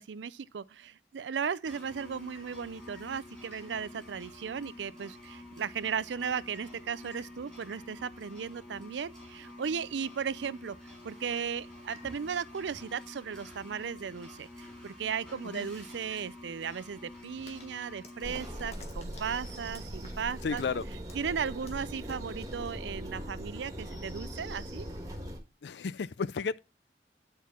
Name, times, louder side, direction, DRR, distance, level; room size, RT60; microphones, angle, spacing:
voice 1, 0.0-20.6 21.2-24.9, right 6 dB, 85° right, 0.5 m, -36 dB
sound 1, 1.6-18.7, left 1 dB, 5° left, 3.5 m, -49 dB
sound 2, 17.5-23.2, left 3 dB, 40° left, 1.5 m, -55 dB
sound 3, 18.2-25.4, equal, 20° right, 1.7 m, -40 dB
voice 2, 20.4-20.9 25.6-26.6, left 5 dB, 70° left, 0.4 m, -33 dB
10.0 x 4.5 x 5.8 m
head